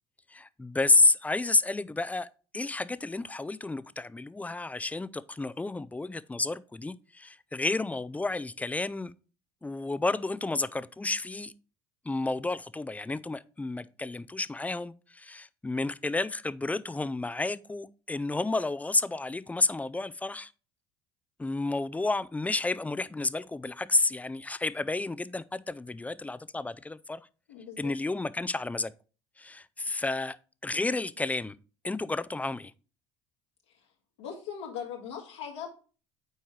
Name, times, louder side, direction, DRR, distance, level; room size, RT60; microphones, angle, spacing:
voice 1, 0.3-2.3 2.5-9.1 9.6-11.5 12.1-20.5 21.4-27.2 27.8-28.9 29.4-30.4 30.6-31.6 31.8-32.7, left 2 dB, 10° left, 0.4 m, -30 dB
voice 2, 27.5-28.0 34.2-35.7, left 8 dB, 85° left, 2.0 m, -39 dB
7.2 x 4.5 x 3.1 m
hypercardioid pair, 70°, 15 cm